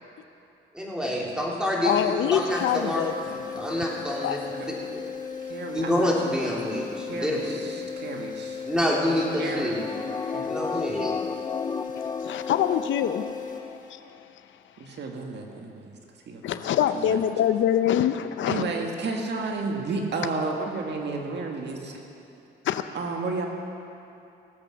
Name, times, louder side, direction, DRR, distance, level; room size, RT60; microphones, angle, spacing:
voice 1, 0.7-4.6 4.9-5.1 5.7-7.8 8.6-9.8 10.5-11.1, equal, 5° right, -4 dB, 3.3 m, -27 dB
voice 2, 1.8-3.5 4.2-4.5 12.2-13.3 16.4-18.6 22.6-22.8, left 10 dB, 75° left, 10 dB, 0.6 m, -25 dB
sound 1, 2.5-14.2, left 6 dB, 40° left, 1.6 m, -36 dB
voice 3, 5.4-6.1 6.4-6.5 7.1-8.7 9.4-9.8 10.3-11.0 14.8-16.0 16.3-17.2 18.5-22.0 22.9-23.5, right 3 dB, 60° right, 1 dB, 1.8 m, -32 dB
sound 2, 9.0-13.8 14.1-14.2, left 5 dB, 20° left, 0.4 m, -34 dB
19.0 x 8.1 x 6.2 m, 2.8 s
cardioid pair, 90°, 20 cm